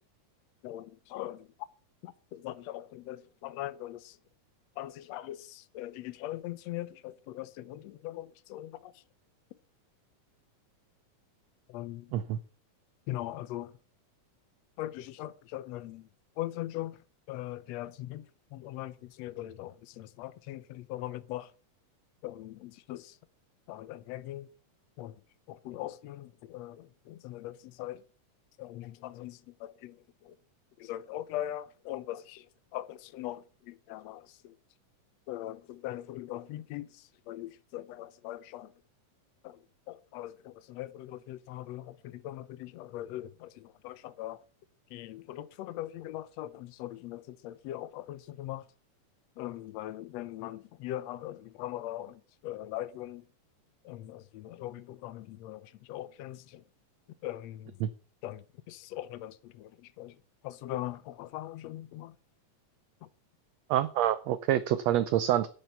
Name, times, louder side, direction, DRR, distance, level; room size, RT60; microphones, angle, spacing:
voice 1, 0.6-1.5 2.0-4.2 4.8-8.9 11.7-12.1 13.1-13.7 14.8-16.1 16.4-17.0 17.3-18.3 18.5-21.5 22.2-23.2 23.7-24.5 25.0-25.2 25.5-28.0 28.6-30.0 30.2-30.4 30.8-32.5 32.7-34.6 35.3-38.7 39.4-39.6 39.9-44.4 44.9-48.6 49.4-53.2 53.8-56.6 57.2-57.8 58.2-60.2 60.4-62.1 63.0-63.1, left 14 dB, 70° left, 1.8 m, -41 dB
voice 2, 63.7-65.5, right 12 dB, 75° right, 1.7 m, -27 dB
10.5 x 6.6 x 8.1 m
omnidirectional pair, 3.5 m